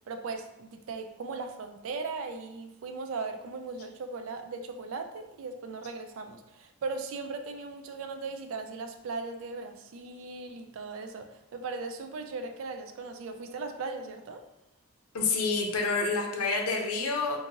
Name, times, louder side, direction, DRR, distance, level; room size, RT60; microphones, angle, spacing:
voice 1, 0.1-14.4, right 4 dB, 65° right, 6 dB, 0.3 m, -38 dB
voice 2, 15.1-17.4, left 4 dB, 85° left, 2 dB, 0.5 m, -28 dB
2.8 x 2.5 x 2.6 m, 0.92 s
head